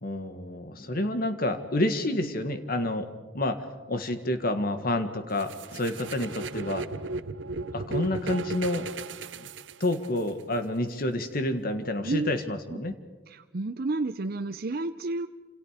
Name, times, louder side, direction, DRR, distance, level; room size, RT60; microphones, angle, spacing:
voice 1, 0.0-6.9 7.7-8.9 9.4-9.5 9.8-12.9, left 1 dB, 55° left, 8 dB, 1.8 m, -29 dB
sound 1, 5.4-10.3, right 3 dB, 90° right, 0.8 m, -35 dB
voice 2, 13.3-15.3, right 2 dB, 55° right, 9 dB, 0.7 m, -31 dB
28.5 x 27.5 x 5.1 m, 1.3 s
head